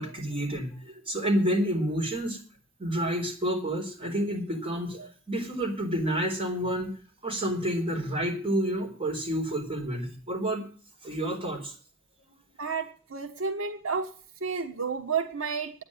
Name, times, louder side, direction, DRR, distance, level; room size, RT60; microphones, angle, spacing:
voice 1, 0.0-2.4 2.8-6.9 7.2-10.7 11.0-11.7, right 1 dB, 25° right, 1 dB, 4.2 m, -29 dB
voice 2, 12.6-14.1 14.4-15.7, right 5 dB, 85° right, 5 dB, 1.4 m, -31 dB
10.0 x 9.8 x 9.8 m, 0.43 s
head